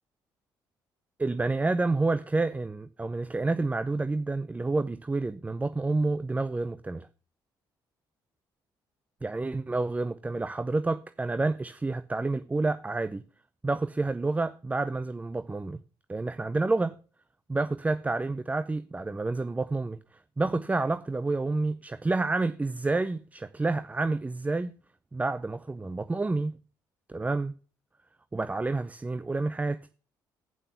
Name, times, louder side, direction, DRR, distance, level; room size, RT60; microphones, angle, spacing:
voice 1, 1.2-7.1 9.2-13.2 13.6-15.8 16.1-17.0 17.5-20.0 20.4-24.8 25.1-26.6 27.1-27.5 28.3-30.0, right 3 dB, 15° right, 0.5 m, -29 dB
8.6 x 5.4 x 6.8 m
supercardioid pair, 70°, 9 cm